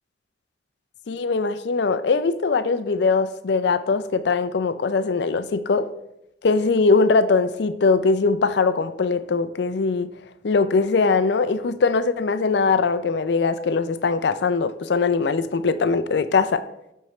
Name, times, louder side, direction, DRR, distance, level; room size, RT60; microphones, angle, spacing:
voice 1, 1.1-5.9 6.4-10.1 10.4-16.6, left 4 dB, 65° left, 0.5 m, -21 dB
12.0 x 4.5 x 3.1 m
head